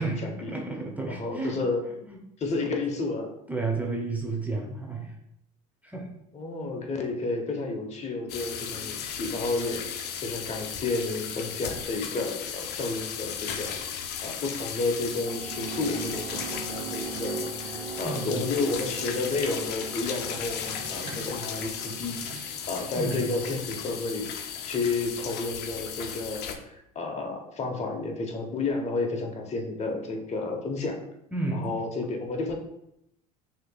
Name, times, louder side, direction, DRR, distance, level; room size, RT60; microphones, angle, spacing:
voice 1, 0.0-1.6 2.1-2.2 3.5-5.1 5.8-6.1 8.7-8.9 18.0-18.3 22.9-23.2 29.9-30.0 31.3-31.7, right 3 dB, 10° right, 0 dB, 0.8 m, -32 dB
voice 2, 1.1-1.8 2.4-3.3 6.3-13.7 14.2-31.0 31.5-32.5, left 3 dB, 35° left, 2 dB, 1.0 m, -31 dB
sound 1, 8.3-26.6, left 8 dB, 55° left, 0.6 m, -36 dB
sound 2, 15.0-23.7, right 6 dB, 70° right, 0.5 m, -40 dB
Sink (filling or washing), 20.1-24.9, right 3 dB, 45° right, 1.0 m, -48 dB
6.2 x 2.9 x 2.3 m, 0.81 s
supercardioid pair, 90°, 20 cm